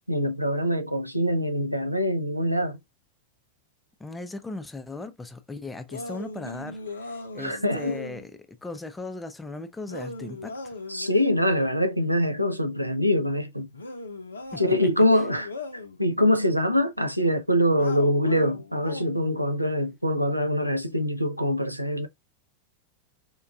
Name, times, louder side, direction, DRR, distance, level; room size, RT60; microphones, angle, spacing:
voice 1, 0.1-2.8 7.4-8.0 10.9-13.7 14.6-15.5 16.0-22.1, left 1 dB, 90° right, 0.4 m, -24 dB
voice 2, 4.0-10.8 14.5-14.6, left 3 dB, 10° left, 0.5 m, -38 dB
sound 1, 5.9-8.3 9.9-11.5 13.7-16.0 17.7-19.3, left 2 dB, 75° left, 0.5 m, -38 dB
4.4 x 2.3 x 2.3 m
figure-of-eight pair, 90°, 0 cm